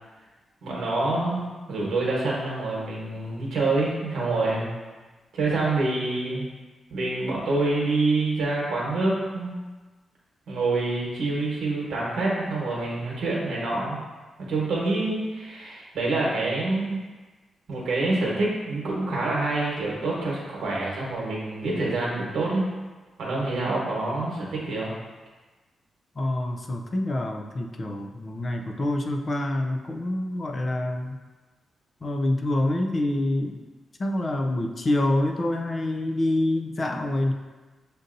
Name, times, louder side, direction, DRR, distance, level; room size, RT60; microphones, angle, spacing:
voice 1, 0.6-4.7 5.3-6.5 6.9-9.6 10.5-14.0 14.4-17.1 17.7-22.6 23.2-24.9, right 2 dB, 75° right, -4 dB, 1.1 m, -26 dB
voice 2, 26.2-31.2 32.0-33.6 34.0-37.3, left 1 dB, 30° left, 3 dB, 0.3 m, -26 dB
6.5 x 2.6 x 2.5 m, 1.3 s
wide cardioid pair, 165°, 0 cm